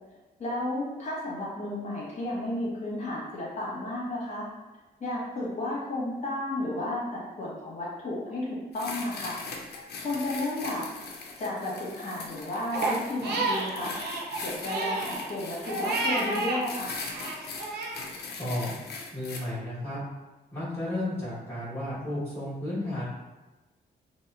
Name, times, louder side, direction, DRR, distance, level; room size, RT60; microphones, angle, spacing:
voice 1, 0.4-4.5 5.0-9.4 10.0-10.9 11.4-14.0 14.4-17.0, left 1 dB, 40° left, -6 dB, 1.0 m, -33 dB
sound 1, 8.7-19.4, left 4 dB, 75° left, 0.4 m, -40 dB
Crying sobbing, 12.7-16.6 17.0-18.0, right 2 dB, 75° right, 0.5 m, -31 dB
voice 2, 18.4-18.7 19.1-20.0 20.5-23.0, left 1 dB, 15° left, -14 dB, 1.1 m, -33 dB
2.8 x 2.1 x 2.3 m, 1.2 s
cardioid pair, 125°, 17 cm